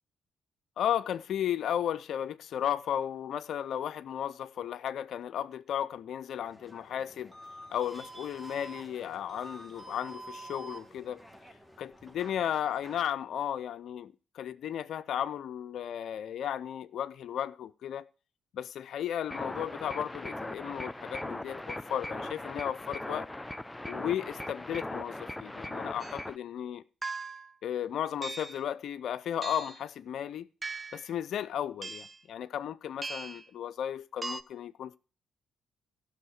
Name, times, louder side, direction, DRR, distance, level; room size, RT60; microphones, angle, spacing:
voice 1, 0.8-7.3 7.7-11.2 11.8-18.1 18.5-23.3 23.8-26.8 27.6-30.5 30.9-35.0, left 10 dB, 65° left, 0.5 m, -34 dB
sound 1, 6.4-13.1, right 1 dB, ahead, 1.5 m, -48 dB
sound 2, 19.3-26.4, left 1 dB, 15° left, 0.6 m, -39 dB
sound 3, 26.0-26.2 27.0-27.5 28.2-28.6 29.4-29.8 30.6-31.1 31.8-32.2 33.0-33.5 34.2-34.4, right 3 dB, 30° right, 0.7 m, -39 dB
14.0 x 6.5 x 4.7 m
hypercardioid pair, 50°, 0 cm